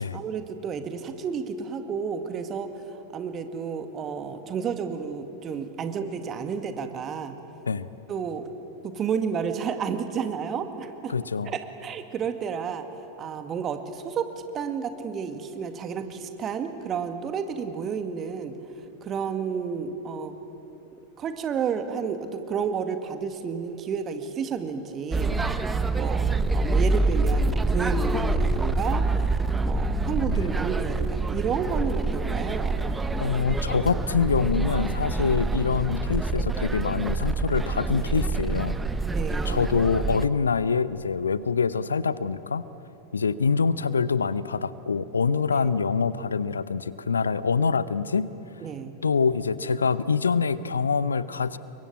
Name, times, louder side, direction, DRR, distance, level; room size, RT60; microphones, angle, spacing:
voice 1, 0.0-7.4 8.1-8.5 8.8-11.1 11.4-12.9 13.2-14.3 14.5-18.6 19.0-20.3 21.2-25.3 26.0-32.8 35.1-35.4 39.1-39.8 45.5-45.6 48.6-49.0, right 6 dB, 30° right, 8 dB, 2.1 m, -31 dB
voice 2, 11.1-11.5 30.3-30.4 33.2-38.8 39.5-42.6 43.1-48.3 49.0-51.6, left 5 dB, 75° left, 17 dB, 0.7 m, -25 dB
sound 1, 25.1-40.2, right 3 dB, 10° right, 1.1 m, -26 dB
29.0 x 23.0 x 8.6 m, 2.9 s
figure-of-eight pair, 90°, 0 cm